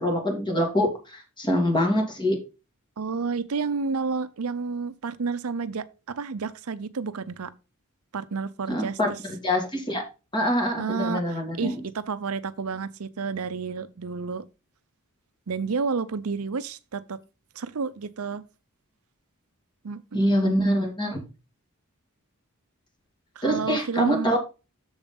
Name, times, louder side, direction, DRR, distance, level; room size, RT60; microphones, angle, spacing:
voice 1, 0.0-2.4 8.7-10.0 10.3-11.8 20.1-21.2 23.4-24.4, equal, 20° left, 2.4 m, -25 dB
voice 2, 3.0-7.5 8.1-9.0 10.8-14.4 15.5-17.2 17.6-18.4 19.8-20.8 23.4-24.3, right 4 dB, 70° right, 0.6 m, -30 dB
7.2 x 7.1 x 3.8 m
head